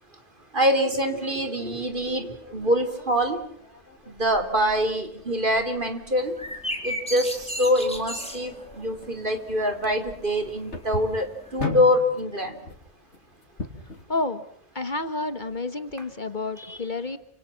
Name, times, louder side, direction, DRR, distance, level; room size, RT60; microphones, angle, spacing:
voice 1, 0.5-3.4 4.1-6.3 6.8-12.5 16.6-16.8, equal, 45° right, 7 dB, 3.8 m, -25 dB
sound 1, 1.9-14.0, left 3 dB, 80° left, 3.5 m, -40 dB
sound 2, 6.2-11.6, equal, 5° left, 4.6 m, -36 dB
voice 2, 14.1-14.4 14.7-17.2, left 2 dB, 45° left, 11 dB, 1.6 m, -30 dB
30.0 x 26.5 x 5.9 m, 0.65 s
omnidirectional pair, 1.2 m